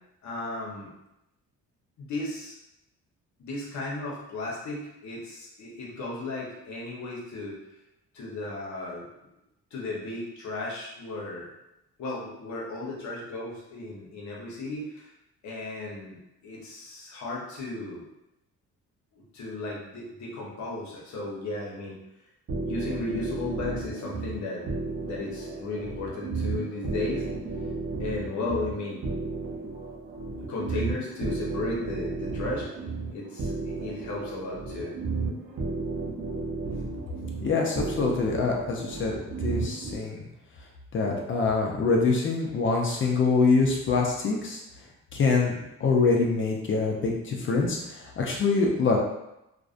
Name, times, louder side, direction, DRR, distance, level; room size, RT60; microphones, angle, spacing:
voice 1, 0.2-0.9 2.0-2.5 3.4-7.6 8.1-9.1 9.7-11.5 12.0-15.1 15.4-18.0 19.1-22.0 22.6-24.7 25.0-27.3 28.0-29.0 30.5-32.7 33.1-34.9, left 2 dB, 70° left, -3 dB, 0.8 m, -35 dB
sound 1, 22.5-39.9, right 3 dB, 45° right, 0.5 m, -33 dB
voice 2, 37.4-40.2 40.9-44.6 45.1-45.5 45.8-49.0, left 4 dB, 40° left, -1 dB, 0.5 m, -25 dB
2.4 x 2.1 x 2.4 m, 0.88 s
cardioid pair, 90°, 30 cm